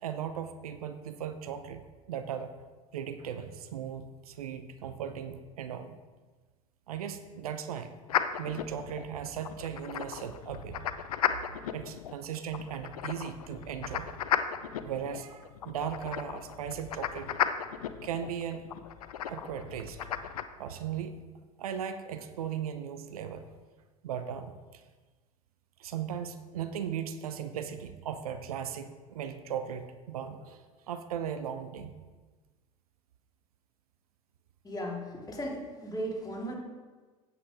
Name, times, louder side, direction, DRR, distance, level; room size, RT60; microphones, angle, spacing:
voice 1, 0.0-2.5 2.9-6.0 6.9-7.9 8.3-10.8 11.7-14.1 14.8-17.3 18.0-18.7 19.3-20.0 20.6-21.2 21.6-23.5 24.0-24.8 25.8-32.0, right 8 dB, 80° right, 9 dB, 0.8 m, -37 dB
sound 1, 8.1-20.4, left 9 dB, 80° left, 0.6 m, -35 dB
voice 2, 34.6-36.6, equal, 20° left, -1 dB, 2.7 m, -36 dB
8.8 x 8.3 x 4.8 m, 1.3 s
hypercardioid pair, 80°, 19 cm